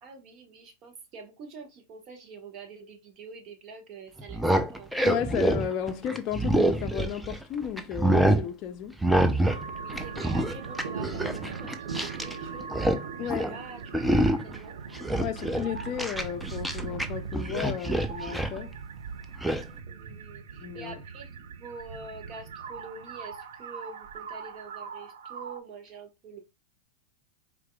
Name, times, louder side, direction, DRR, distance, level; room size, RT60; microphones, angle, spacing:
voice 1, 0.0-5.1 9.7-12.8 13.2-14.1 14.4-14.8 19.9-26.4, right 4 dB, 45° right, 1.4 m, -46 dB
sound 1, 4.2-7.4 7.8-8.4 9.0-9.6 9.9-12.3 12.6-13.0 13.3-13.5 13.9-14.6 14.9-17.1 17.3-18.6 19.4-19.6, right 1 dB, 5° right, 0.6 m, -26 dB
voice 2, 5.0-9.0 13.2-13.5 15.2-18.8 20.6-21.0, left 9 dB, 40° left, 0.5 m, -33 dB
sound 2, 9.5-25.6, right 6 dB, 70° right, 0.6 m, -40 dB
4.7 x 3.7 x 2.3 m
hypercardioid pair, 95°, 0 cm